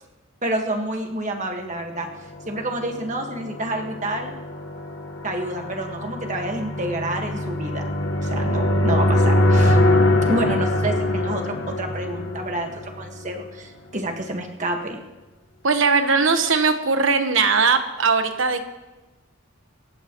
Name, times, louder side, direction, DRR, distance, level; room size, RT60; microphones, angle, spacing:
voice 1, 0.4-2.1 2.4-4.3 5.2-7.9 8.2-9.8 10.2-12.7 13.0-15.0, right 1 dB, 35° right, 3 dB, 1.6 m, -28 dB
sound 1, 2.6-13.4, left 1 dB, 65° left, 1.4 m, -22 dB
voice 2, 15.6-18.6, right 4 dB, 65° right, 7 dB, 1.2 m, -19 dB
27.0 x 15.0 x 3.1 m, 1.1 s
head